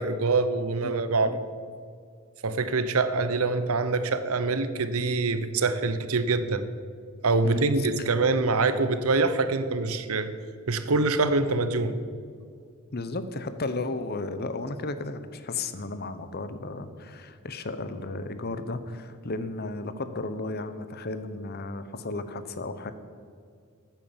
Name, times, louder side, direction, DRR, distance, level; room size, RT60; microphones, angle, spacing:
voice 1, 0.0-1.4 2.4-6.7 7.2-10.3 10.7-12.0, right 3 dB, 80° right, 12 dB, 0.9 m, -25 dB
voice 2, 12.9-22.9, left 2 dB, 45° left, 11 dB, 0.9 m, -34 dB
14.5 x 9.2 x 7.3 m, 2.2 s
head